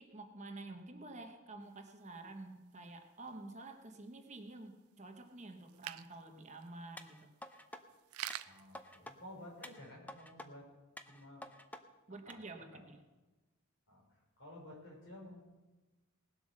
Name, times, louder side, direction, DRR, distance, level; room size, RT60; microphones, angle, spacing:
voice 1, 0.0-7.3 12.1-13.0, right 2 dB, 35° right, 5 dB, 1.0 m, -50 dB
sound 1, 1.6-9.8, right 12 dB, 85° right, 0.5 m, -52 dB
sound 2, 7.0-7.8 8.3-9.2 9.6-10.5 11.0-11.8 12.3-12.4, left 1 dB, 5° left, 0.6 m, -50 dB
voice 2, 8.4-10.7 11.0-11.4 12.2-12.4 12.7-12.8 13.9-15.4, left 1 dB, 60° left, -2 dB, 5.3 m, -53 dB
19.0 x 7.8 x 6.4 m, 1.1 s
head